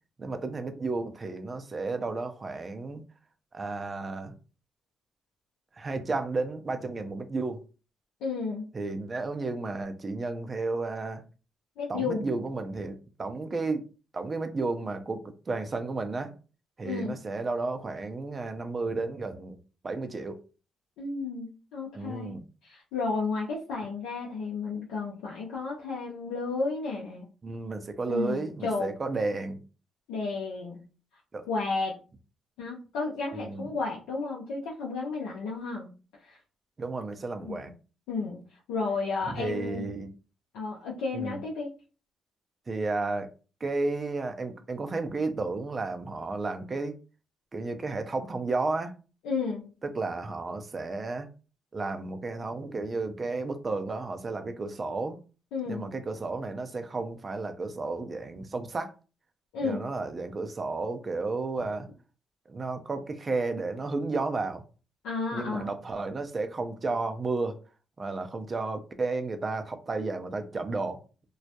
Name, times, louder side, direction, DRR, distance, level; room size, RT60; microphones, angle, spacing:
voice 1, 0.2-3.0 3.5-4.3 5.8-7.6 8.7-11.2 11.9-13.8 14.1-16.3 16.8-19.6 19.8-20.4 21.9-22.5 27.4-29.6 31.3-31.5 33.4-33.6 36.8-37.7 39.3-40.1 41.1-41.4 42.7-43.3 43.6-47.0 47.5-48.9 49.8-51.3 51.7-55.2 55.7-58.9 59.6-61.9 62.5-64.6 65.3-67.6 68.0-71.0, right 3 dB, 40° right, 0.5 m, -32 dB
voice 2, 8.2-8.7 11.8-12.2 16.8-17.1 21.0-22.3 22.6-27.3 28.1-28.9 30.1-30.8 31.5-32.0 32.6-35.9 36.2-36.4 37.4-37.7 38.1-38.4 38.7-39.9 40.5-41.7 49.2-49.7 55.5-55.9 59.5-59.8 65.0-65.7, left 4 dB, 85° left, 0.5 m, -32 dB
2.2 x 2.0 x 2.8 m
supercardioid pair, 55°, 0 cm